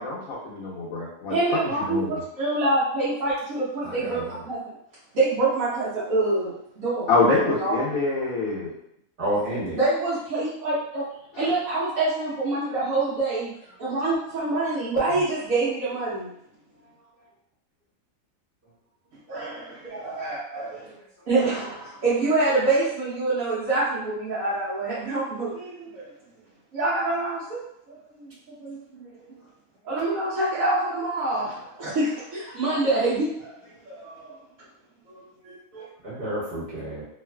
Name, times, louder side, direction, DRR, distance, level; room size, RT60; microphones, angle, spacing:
voice 1, 0.0-1.4 1.9-2.2 7.1-8.7 11.3-11.5, left 3 dB, 80° left, -7 dB, 1.1 m, -25 dB
voice 2, 1.3-4.6 5.1-7.1 7.5-7.8 9.7-11.1 11.4-13.5 13.8-16.3 19.3-20.9 21.3-26.1 26.7-28.0 28.6-29.3 29.8-33.5 33.9-34.4 35.1-35.8, right 2 dB, 80° right, -10 dB, 1.2 m, -26 dB
voice 3, 3.8-4.4 9.2-9.8 36.0-37.0, right 1 dB, 45° right, -8 dB, 1.3 m, -30 dB
3.0 x 2.4 x 2.2 m, 0.72 s
omnidirectional pair, 1.4 m